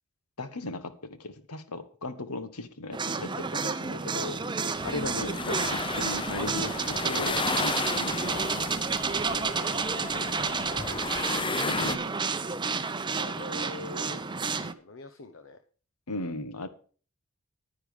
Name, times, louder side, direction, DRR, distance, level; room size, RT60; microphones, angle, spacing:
voice 1, 0.4-4.4 4.8-8.5 11.6-12.1 16.1-16.7, left 2 dB, 80° left, 12 dB, 1.4 m, -37 dB
sound 1, 2.9-14.7, right 4 dB, 20° right, 0.7 m, -30 dB
sound 2, 4.7-12.0, left 4 dB, 20° left, 0.7 m, -34 dB
voice 2, 9.0-11.1 13.1-15.6, left 2 dB, 60° left, 8 dB, 0.9 m, -45 dB
10.0 x 10.0 x 5.1 m, 0.40 s
head